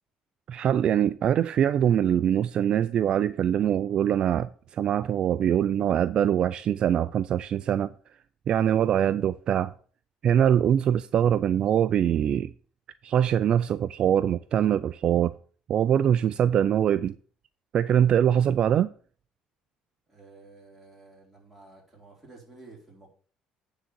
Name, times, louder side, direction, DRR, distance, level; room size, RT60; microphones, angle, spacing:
voice 1, 0.5-7.9 8.5-9.7 10.2-12.5 13.0-15.4 15.7-17.2 17.7-18.9, right 9 dB, 45° right, 0.3 m, -23 dB
voice 2, 20.1-23.1, right 3 dB, 5° right, 4.0 m, -51 dB
9.8 x 3.8 x 6.8 m
cardioid pair, 130°, 2 cm